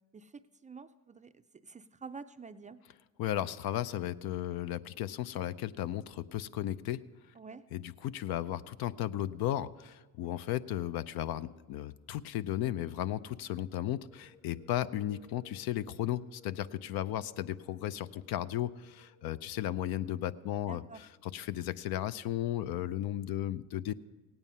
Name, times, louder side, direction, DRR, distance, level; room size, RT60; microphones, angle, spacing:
voice 1, 0.1-2.8 7.3-7.7 20.6-21.1, right 4 dB, 20° right, 10 dB, 0.4 m, -48 dB
voice 2, 3.2-7.0 7.7-20.8 21.3-23.9, left 12 dB, 70° left, 15 dB, 0.6 m, -35 dB
sound 1, 13.9-21.5, left 3 dB, 90° left, 2.7 m, -62 dB
17.0 x 9.0 x 5.5 m, 1.3 s
cardioid pair, 90°, 38 cm